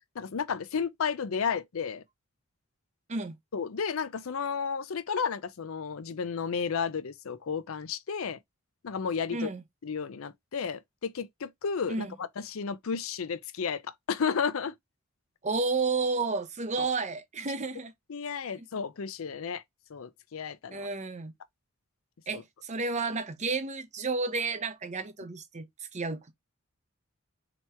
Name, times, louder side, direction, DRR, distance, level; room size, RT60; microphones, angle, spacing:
voice 1, 0.2-2.0 3.5-8.4 8.8-9.5 9.8-14.7 16.8-16.9 18.1-19.6 19.9-20.9 22.3-22.4, left 6 dB, 80° left, 0.5 m, -32 dB
voice 2, 9.3-9.6 11.9-12.1 15.4-17.9 20.7-21.3 22.3-25.7 25.9-26.3, right 3 dB, 35° right, 0.6 m, -31 dB
3.4 x 3.0 x 4.3 m
head